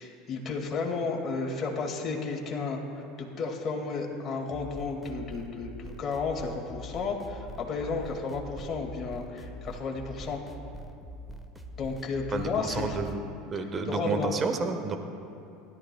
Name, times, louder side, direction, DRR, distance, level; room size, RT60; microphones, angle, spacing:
voice 1, 0.0-10.4 11.8-13.0 13.9-14.3, left 4 dB, 40° left, 0 dB, 2.2 m, -33 dB
sound 1, 4.5-13.2, equal, 5° right, 1.2 m, -43 dB
voice 2, 12.3-15.0, right 3 dB, 30° right, 6 dB, 1.3 m, -31 dB
20.0 x 12.5 x 2.3 m, 2.8 s
hypercardioid pair, 75°, 0 cm